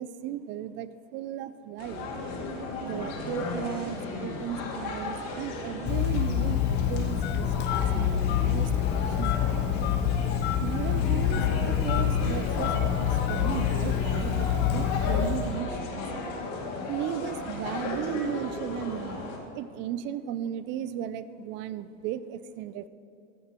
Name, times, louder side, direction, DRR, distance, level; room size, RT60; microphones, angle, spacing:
voice 1, 0.0-2.1 2.8-8.8 9.2-9.6 10.6-16.0 16.9-19.3 19.5-22.9, right 10 dB, 30° right, 15 dB, 0.4 m, -36 dB
sound 1, 1.8-19.4, left 3 dB, 45° left, 2.2 m, -35 dB
Telephone, 5.9-15.6, left 9 dB, 30° left, 0.6 m, -26 dB
15.0 x 6.9 x 4.4 m, 2.8 s
hypercardioid pair, 110°, 38 cm